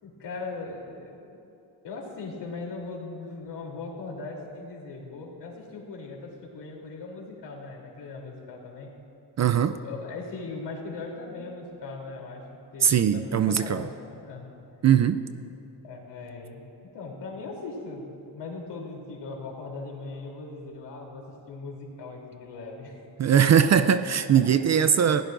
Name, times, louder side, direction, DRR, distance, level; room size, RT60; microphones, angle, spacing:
voice 1, 0.0-1.4 1.8-8.9 9.8-12.5 12.7-14.5 15.8-16.6 16.9-23.0 23.3-23.5 24.3-24.4, left 3 dB, 65° left, -1 dB, 3.3 m, -39 dB
voice 2, 9.4-9.8 12.8-13.9 14.8-15.2 23.2-25.2, right 8 dB, 40° right, 11 dB, 0.4 m, -20 dB
29.0 x 16.0 x 2.6 m, 2.7 s
cardioid pair, 125°, 45 cm